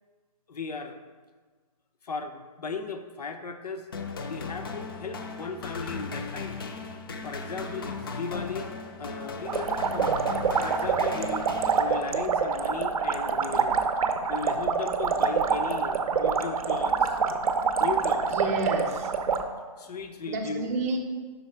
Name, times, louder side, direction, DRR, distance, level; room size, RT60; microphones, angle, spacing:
voice 1, 0.5-1.0 2.0-3.9 4.3-6.6 7.2-8.7 9.0-10.1 10.6-11.5 11.8-13.7 14.3-17.2 17.8-18.3 19.8-20.7, left 4 dB, 85° left, 7 dB, 0.7 m, -36 dB
sound 1, 3.9-12.3, left 4 dB, 35° left, 0.4 m, -37 dB
sound 2, 9.4-19.4, right 5 dB, 70° right, 0.5 m, -26 dB
voice 2, 18.3-19.1 19.8-19.9 20.3-21.0, right 3 dB, 25° right, 1 dB, 0.5 m, -30 dB
5.4 x 4.1 x 4.4 m, 1.4 s
hypercardioid pair, 170°, 19 cm